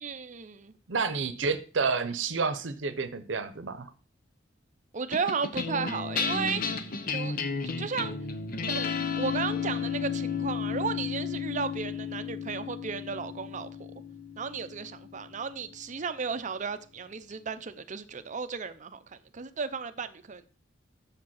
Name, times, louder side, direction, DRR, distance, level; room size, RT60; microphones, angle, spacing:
voice 1, 0.0-0.7 4.9-6.6 7.1-7.4 7.8-8.1 8.7-13.9 14.4-19.0 19.3-20.5, right 5 dB, 40° right, 0.6 m, -34 dB
voice 2, 0.9-3.9, right 4 dB, 85° right, 0.8 m, -30 dB
sound 1, 5.1-15.7, left 6 dB, 50° left, 0.8 m, -33 dB
6.8 x 5.2 x 5.5 m
head